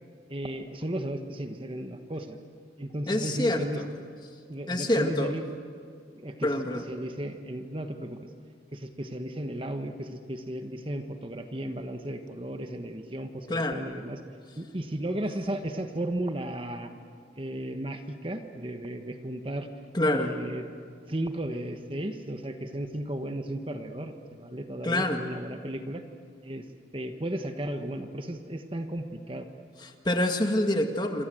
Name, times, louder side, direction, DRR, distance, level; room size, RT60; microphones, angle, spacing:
voice 1, 0.3-2.4 2.8-3.8 4.5-5.4 6.2-6.5 6.9-8.2 8.7-14.2 14.6-16.9 17.3-19.7 20.1-20.6 21.1-26.0 26.4-26.6 26.9-29.5, right 1 dB, 30° right, 6 dB, 1.4 m, -34 dB
voice 2, 3.1-3.9 4.7-5.3 6.4-6.8 13.5-13.8 19.9-20.3 24.8-25.2 29.8-31.3, left 1 dB, 25° left, 5 dB, 1.8 m, -26 dB
28.0 x 25.5 x 7.9 m, 2.1 s
head